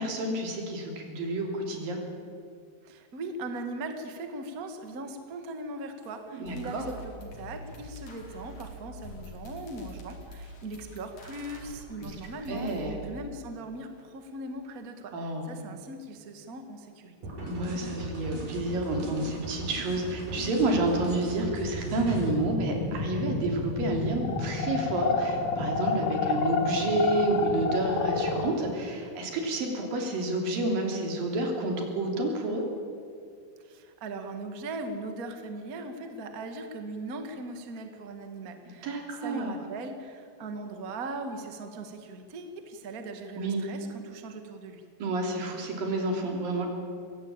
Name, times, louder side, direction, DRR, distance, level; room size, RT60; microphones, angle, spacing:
voice 1, 0.0-2.0 6.3-6.9 12.0-12.1 12.5-13.0 15.1-15.6 17.4-32.6 38.8-39.5 43.4-43.6 45.0-46.7, right 2 dB, 85° right, 2 dB, 4.8 m, -29 dB
voice 2, 2.8-17.2 33.6-38.9 39.2-44.8, right 2 dB, 35° right, 6 dB, 1.5 m, -39 dB
sound 1, 6.0-6.1 6.5-12.9, left 1 dB, 55° left, 4.1 m, -45 dB
sound 2, 17.2-22.3, right 1 dB, 70° right, 5.8 m, -38 dB
sound 3, 21.9-28.5, left 4 dB, 70° left, 3.2 m, -29 dB
22.0 x 16.5 x 8.8 m, 2.3 s
omnidirectional pair, 3.9 m